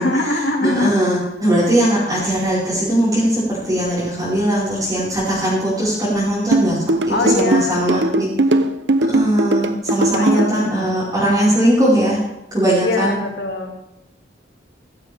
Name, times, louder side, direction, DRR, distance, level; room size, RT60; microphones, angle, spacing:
voice 1, 0.0-1.1 7.1-7.8 10.2-11.0 12.8-13.7, left 2 dB, 70° left, 2 dB, 2.5 m, -22 dB
voice 2, 0.6-8.3 9.1-12.2 12.5-13.2, right 1 dB, 20° right, -11 dB, 5.3 m, -19 dB
sound 1, 6.5-10.5, right 2 dB, 75° right, 0.8 m, -18 dB
15.0 x 14.0 x 3.6 m, 0.85 s
head